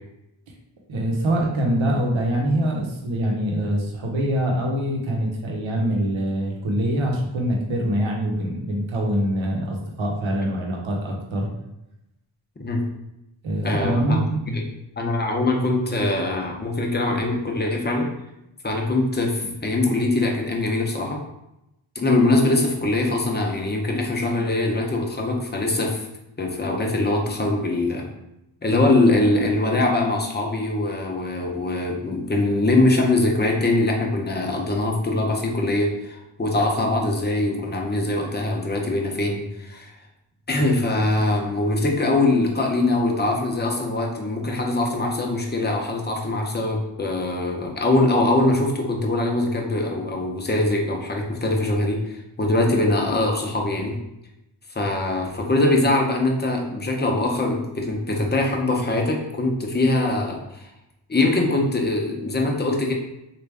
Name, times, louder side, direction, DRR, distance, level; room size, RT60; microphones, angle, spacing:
voice 1, 0.9-11.5 13.4-14.5, right 1 dB, 70° right, 0 dB, 0.9 m, -24 dB
voice 2, 13.6-14.2 15.0-18.1 18.6-21.2 22.0-26.1 26.4-28.1 28.6-39.9 40.5-54.0 54.7-60.7 61.1-62.9, left 2 dB, 20° left, 1 dB, 0.7 m, -22 dB
3.2 x 2.5 x 3.4 m, 0.88 s
cardioid pair, 50°, 49 cm